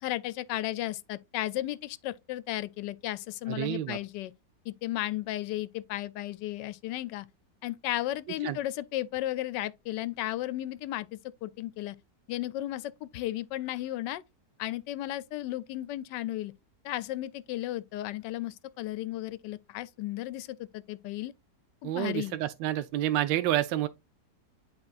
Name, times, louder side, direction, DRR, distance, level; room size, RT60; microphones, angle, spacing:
voice 1, 0.0-4.3 4.6-7.3 7.6-12.0 12.3-14.2 14.6-16.5 16.8-21.3 21.8-22.4, left 15 dB, 80° left, 1.2 m, -34 dB
voice 2, 3.5-4.0 8.4-8.6 21.8-23.9, right 13 dB, 85° right, 1.2 m, -29 dB
10.5 x 3.9 x 2.4 m
omnidirectional pair, 1.9 m